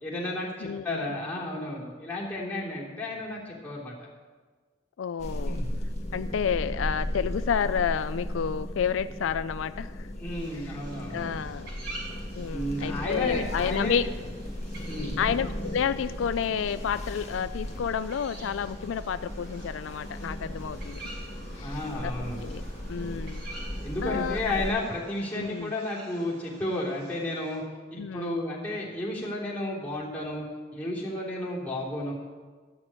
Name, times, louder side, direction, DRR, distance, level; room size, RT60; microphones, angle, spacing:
voice 1, 0.0-4.1 5.4-5.7 10.2-11.3 12.5-14.1 14.8-15.2 21.6-22.4 23.8-27.6 27.9-30.5 30.7-32.1, left 1 dB, 10° left, -6 dB, 3.2 m, -32 dB
voice 2, 0.6-1.2 5.0-5.6 6.1-10.1 11.1-11.7 12.4-14.1 15.2-21.0 21.5-22.1 22.4-22.6 22.9-23.4 24.0-24.4 25.3-25.7 28.0-28.4, left 7 dB, 85° left, 13 dB, 0.4 m, -30 dB
sound 1, 5.2-24.7, equal, 35° left, 1.7 m, -36 dB
sound 2, 10.3-27.6, right 2 dB, 60° right, 4.5 m, -48 dB
13.5 x 6.2 x 8.8 m, 1.4 s
head